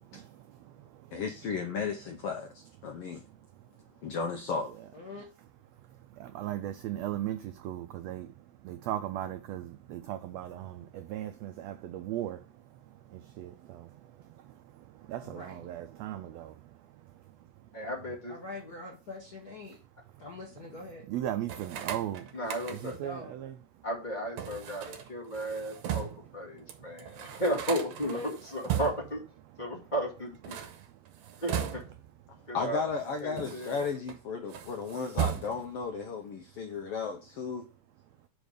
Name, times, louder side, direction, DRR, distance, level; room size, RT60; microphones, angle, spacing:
voice 1, 1.1-3.2 4.0-4.7 32.5-37.7, left 5 dB, 85° left, 1.3 m, -34 dB
voice 2, 4.9-5.2 15.2-15.7 18.3-19.8 20.2-21.0 22.9-23.3 28.0-28.3, left 3 dB, 60° left, 1.0 m, -43 dB
voice 3, 6.2-8.3 8.6-12.4 13.4-13.8 15.1-16.5 21.1-22.2 22.7-23.5, right 12 dB, 85° right, 1.5 m, -36 dB
voice 4, 17.7-18.4 22.3-22.9 23.8-29.2 29.6-30.7 31.4-31.8 32.5-32.8 33.2-33.9, equal, 20° left, 1.5 m, -34 dB
sound 1, 21.5-23.1 24.4-26.3 26.7-26.8 27.0-29.2 30.3-32.1 32.9-34.2 34.5-35.8, right 10 dB, 70° right, 2.1 m, -37 dB
5.2 x 5.1 x 6.3 m
omnidirectional pair, 3.6 m